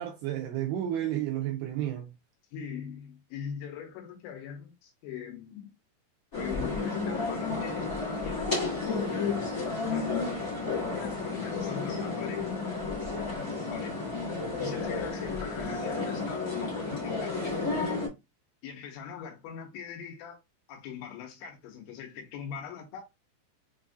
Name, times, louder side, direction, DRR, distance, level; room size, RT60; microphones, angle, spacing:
voice 1, 0.0-2.1, right 12 dB, 85° right, 2.4 m, -31 dB
voice 2, 2.5-5.5 6.4-10.3 10.9-14.0 14.6-17.4 18.6-20.4 20.7-23.0, left 7 dB, 85° left, 3.3 m, -42 dB
sound 1, 6.3-18.1, left 4 dB, 40° left, 1.2 m, -32 dB
6.9 x 2.6 x 2.4 m
omnidirectional pair, 5.3 m